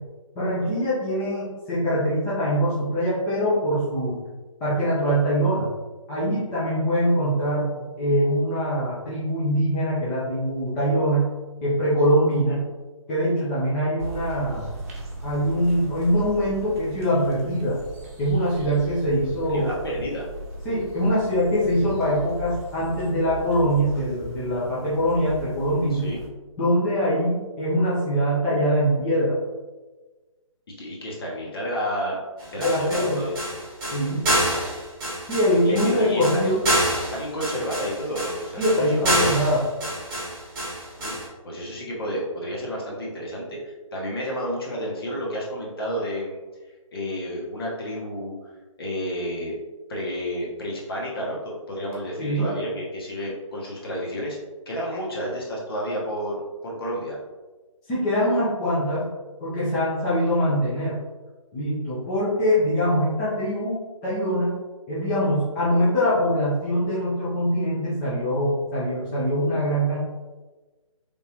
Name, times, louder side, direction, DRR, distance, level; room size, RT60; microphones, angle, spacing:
voice 1, 0.3-4.2 4.6-5.7 6.1-11.3 11.6-12.6 13.1-14.7 15.2-17.8 18.2-19.7 20.6-26.1 26.6-29.3 32.6-33.3 33.9-34.2 35.3-36.6 38.6-39.6 52.2-52.4 57.9-59.1 59.4-61.0 61.5-64.6 64.9-70.0, equal, 10° left, -11 dB, 0.6 m, -23 dB
sound 1, 14.0-26.3, right 2 dB, 25° right, 1.0 m, -38 dB
voice 2, 19.5-20.3 25.9-26.2 30.8-33.4 34.2-34.6 35.6-39.3 41.0-46.4 46.9-48.5 48.8-49.6 49.9-54.4 54.7-57.2 65.2-65.3, equal, 45° left, -3 dB, 1.2 m, -31 dB
sound 2, 32.4-41.2, right 1 dB, 10° right, 1.3 m, -27 dB
3.6 x 3.6 x 2.9 m, 1.2 s
hypercardioid pair, 165°, 18 cm